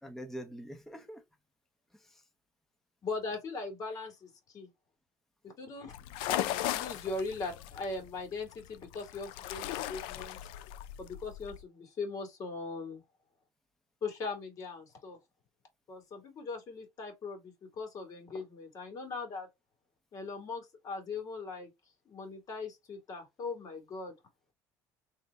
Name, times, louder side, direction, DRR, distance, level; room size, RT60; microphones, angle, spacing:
voice 1, 0.0-1.2 1.9-2.2, right 1 dB, 5° left, 0.6 m, -45 dB
voice 2, 3.0-4.7 5.6-5.9 6.3-10.4 11.0-13.0 14.0-15.2 15.9-19.5 20.1-21.7 22.1-24.2, left 3 dB, 45° left, 1.9 m, -40 dB
sound 1, 5.9-11.6, left 13 dB, 80° left, 0.4 m, -37 dB
3.2 x 2.1 x 3.9 m
supercardioid pair, 105°, 8 cm